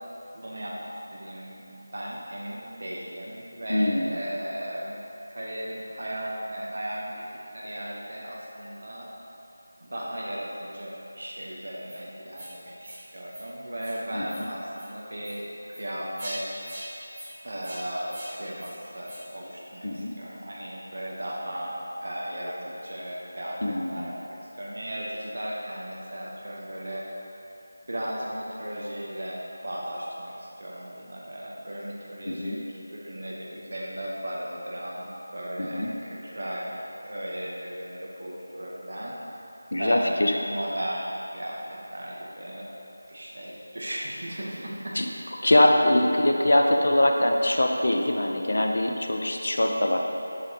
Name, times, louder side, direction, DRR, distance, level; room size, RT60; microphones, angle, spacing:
voice 1, 0.3-1.7 1.9-5.0 5.3-7.2 7.5-9.1 9.8-16.7 17.4-21.7 22.0-27.0 27.9-36.8 37.0-39.1 39.8-42.7 43.1-45.0, equal, 70° right, -4 dB, 0.9 m, -36 dB
voice 2, 3.7-4.1 14.1-14.5 19.8-20.1 23.6-24.1 32.3-32.6 35.6-35.9 39.7-40.3 44.9-45.1 45.4-50.0, left 1 dB, 65° left, 2 dB, 0.6 m, -23 dB
sound 1, 11.8-12.0 12.3-12.5 12.8-13.0 13.3-13.4 13.8-14.0 14.2-14.4 14.7-14.9 15.2-15.4 15.7-15.8 16.2-16.4 16.6-16.8 17.1-17.3 17.6-17.8 18.1-18.3 18.6-18.7 19.0-19.2, right 1 dB, 20° right, 1.3 m, -42 dB
6.5 x 5.0 x 2.9 m, 3.0 s
figure-of-eight pair, 175°, 0 cm